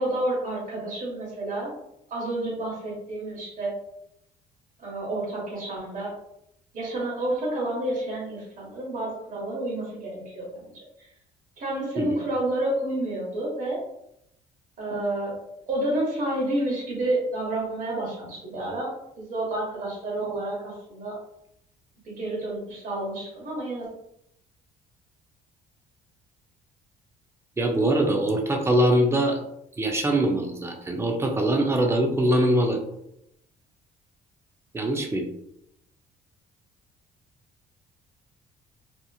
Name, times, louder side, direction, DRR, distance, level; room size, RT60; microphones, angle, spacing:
voice 1, 0.0-1.7 2.1-3.7 4.8-6.1 6.7-11.1 11.6-13.8 14.8-15.4 15.7-21.2 22.0-23.9, right 1 dB, 50° right, -4 dB, 1.5 m, -30 dB
voice 2, 27.6-29.4 29.8-32.8 34.7-35.3, right 1 dB, 15° right, 2 dB, 0.5 m, -23 dB
2.9 x 2.4 x 2.4 m, 0.79 s
cardioid pair, 110°, 17 cm